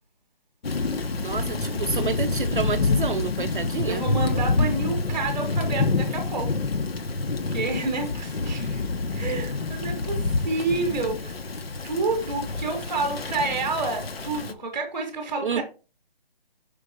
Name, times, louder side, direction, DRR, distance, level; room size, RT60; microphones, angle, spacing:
Thunder / Rain, 0.6-14.5, left 3 dB, 85° left, 1.0 m, -27 dB
voice 1, 1.2-4.0 15.4-15.6, right 6 dB, 60° right, 0.5 m, -29 dB
voice 2, 3.8-6.6 7.5-8.8 9.1-11.4 11.8-15.6, right 3 dB, 10° right, 0.9 m, -29 dB
5.2 x 3.9 x 5.1 m
hypercardioid pair, 170°, 30 cm